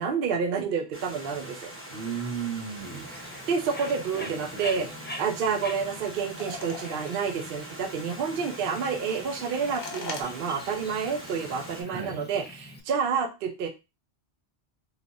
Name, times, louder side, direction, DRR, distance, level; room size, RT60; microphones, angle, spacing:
voice 1, 0.0-1.7 3.5-4.9 5.2-13.7, right 6 dB, 65° right, 5 dB, 0.7 m, -29 dB
Stream, 0.9-11.8, right 1 dB, 15° right, 0.8 m, -43 dB
voice 2, 1.9-3.1 4.1-4.9 11.9-12.2, right 6 dB, 90° right, 2 dB, 1.2 m, -35 dB
Bird, 2.8-12.8, left 1 dB, 20° left, 0.3 m, -44 dB
sound 1, 3.1-10.2, left 4 dB, 50° left, 0.8 m, -45 dB
2.8 x 2.4 x 3.9 m, 0.26 s
omnidirectional pair, 1.1 m